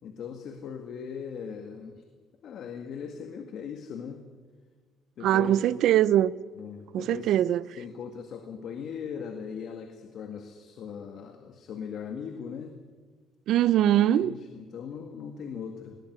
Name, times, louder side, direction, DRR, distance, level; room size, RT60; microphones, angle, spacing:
voice 1, 0.0-2.0 2.4-4.3 5.2-5.7 6.6-7.4 7.8-12.8 13.9-16.0, left 7 dB, 60° left, 2.0 m, -39 dB
voice 2, 5.2-6.3 6.9-7.6 13.5-14.3, right 12 dB, 70° right, 0.6 m, -22 dB
19.5 x 19.0 x 9.8 m
cardioid pair, 115°, 0 cm